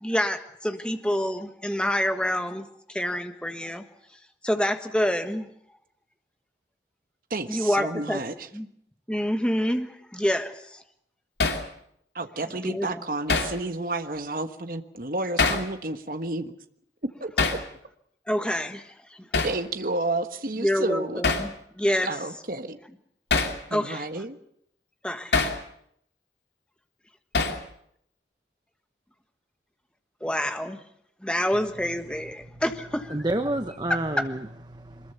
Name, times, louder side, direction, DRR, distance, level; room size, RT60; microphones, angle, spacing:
voice 1, 0.0-3.8 4.4-5.5 7.5-8.2 8.5-8.7 9.1-10.8 12.6-13.0 18.3-18.8 20.6-22.1 23.7-24.0 25.0-25.4 30.2-30.8 31.2-33.2 34.2-34.3, equal, 5° left, 1.4 m, -27 dB
voice 2, 7.3-8.5 12.1-16.5 17.2-17.3 19.4-21.2 22.0-22.8 23.7-24.4, right 2 dB, 50° right, 1.3 m, -31 dB
Hammer, 11.4-11.7 13.3-13.6 15.4-15.7 17.4-17.6 19.3-19.6 21.2-21.5 23.3-23.6 25.3-25.6 27.3-27.7, left 4 dB, 75° left, 2.6 m, -24 dB
voice 3, 33.1-35.1, right 1 dB, 25° right, 1.0 m, -30 dB
23.5 x 21.5 x 6.9 m
head